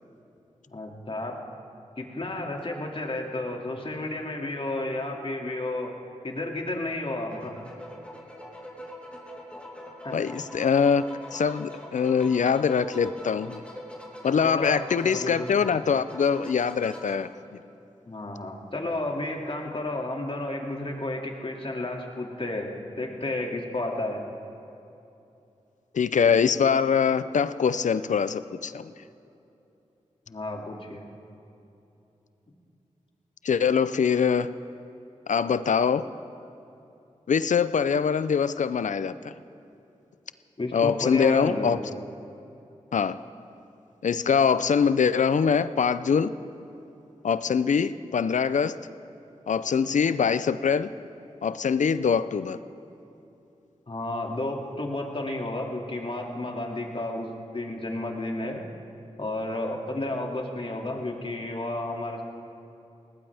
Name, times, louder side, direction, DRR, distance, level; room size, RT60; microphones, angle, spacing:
voice 1, 0.7-1.4 2.0-6.0 6.2-7.6 10.0-10.2 14.4-15.6 18.1-24.2 30.3-31.1 40.6-41.8 53.9-58.6 59.2-62.2, left 2 dB, 45° left, 1 dB, 2.5 m, -32 dB
sound 1, 7.3-17.1, equal, 10° left, 3.3 m, -43 dB
voice 2, 10.1-11.1 11.3-13.6 14.2-17.3 25.9-28.9 33.4-34.5 35.3-36.0 37.3-39.3 40.7-41.8 42.9-43.2 44.0-46.3 47.2-48.8 49.5-50.9 51.4-52.6, left 6 dB, 70° left, 14 dB, 0.5 m, -23 dB
20.0 x 18.0 x 3.5 m, 2.8 s
cardioid pair, 45°, 13 cm